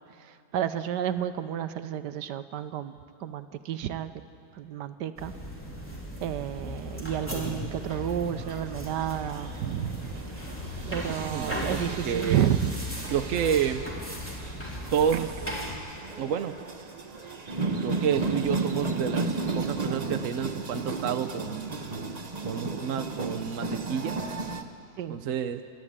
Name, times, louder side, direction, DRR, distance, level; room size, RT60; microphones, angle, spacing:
voice 1, 0.5-4.1 4.6-5.3 6.2-10.1 10.8-12.7 15.1-15.2 25.0-25.2, right 10 dB, 80° right, 11 dB, 1.3 m, -31 dB
sound 1, 5.2-15.8, left 1 dB, 5° left, 3.3 m, -37 dB
sound 2, 7.8-24.6, right 3 dB, 30° right, 0.9 m, -35 dB
voice 2, 10.9-12.5 13.1-13.9 14.4-14.5 14.9-15.3 16.2-16.5 17.8-21.7 22.5-24.2 25.1-25.6, right 8 dB, 60° right, 7 dB, 0.9 m, -29 dB
28.0 x 12.0 x 8.7 m, 2.3 s
omnidirectional pair, 1.9 m